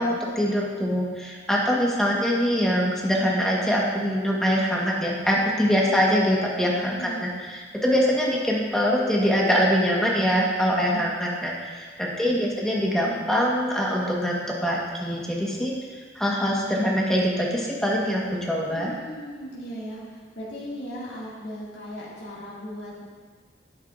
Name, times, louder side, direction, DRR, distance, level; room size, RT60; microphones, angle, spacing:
voice 1, 0.0-7.3 7.8-15.7 16.1-18.9, equal, 5° left, -4 dB, 1.3 m, -23 dB
voice 2, 18.7-23.1, equal, 85° left, -8 dB, 2.2 m, -38 dB
10.0 x 7.9 x 2.5 m, 1.5 s
head